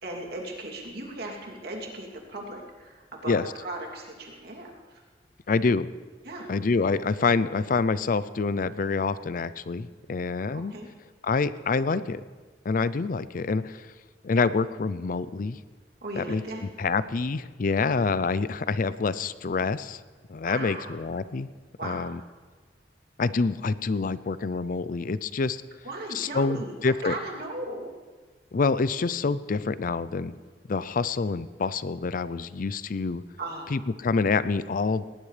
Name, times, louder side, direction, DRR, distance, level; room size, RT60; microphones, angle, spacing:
voice 1, 0.0-5.0 6.2-6.5 10.5-10.9 16.0-16.6 20.4-21.0 21.8-22.1 25.8-27.9 33.4-33.7, right 1 dB, 60° right, -1 dB, 2.8 m, -37 dB
voice 2, 5.5-5.9 6.5-10.7 11.2-12.2 12.6-13.9 14.2-15.6 16.1-16.4 16.8-20.0 20.3-21.5 21.8-22.2 23.2-25.6 26.1-27.1 28.5-30.3 30.7-33.2 33.7-35.1, left 4 dB, 50° left, 15 dB, 0.5 m, -26 dB
19.0 x 18.5 x 3.3 m, 1.4 s
head